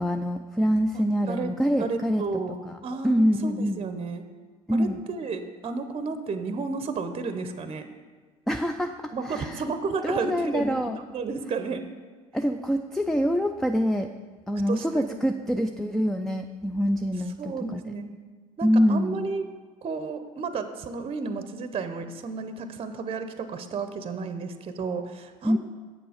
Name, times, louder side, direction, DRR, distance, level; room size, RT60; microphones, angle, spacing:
voice 1, 0.0-2.2 2.7-2.8 3.0-3.8 4.7-5.0 8.5-9.7 10.0-11.0 12.3-14.1 14.5-17.4 17.7-17.8 18.6-19.3 25.4-25.6, equal, ahead, 7 dB, 0.4 m, -25 dB
voice 2, 0.9-4.2 4.7-7.9 9.1-11.8 14.6-15.5 17.4-18.1 18.6-19.4 19.8-25.6, right 4 dB, 30° right, 9 dB, 0.7 m, -32 dB
7.5 x 6.8 x 5.0 m, 1.4 s
hypercardioid pair, 70°, 18 cm